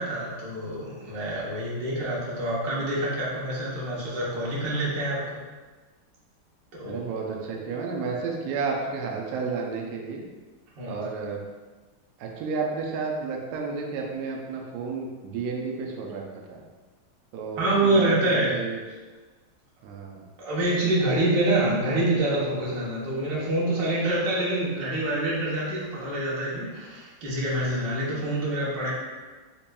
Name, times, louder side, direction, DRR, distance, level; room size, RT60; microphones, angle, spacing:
voice 1, 0.0-5.2 6.7-7.0 10.8-11.0 17.6-18.6 20.4-28.9, right 1 dB, 65° right, -6 dB, 1.5 m, -26 dB
voice 2, 6.8-10.2 10.8-11.4 12.2-16.2 16.5-16.6 17.3-18.8 19.8-20.3, right 4 dB, 90° right, 0 dB, 0.8 m, -31 dB
4.3 x 2.9 x 2.2 m, 1.3 s
omnidirectional pair, 2.3 m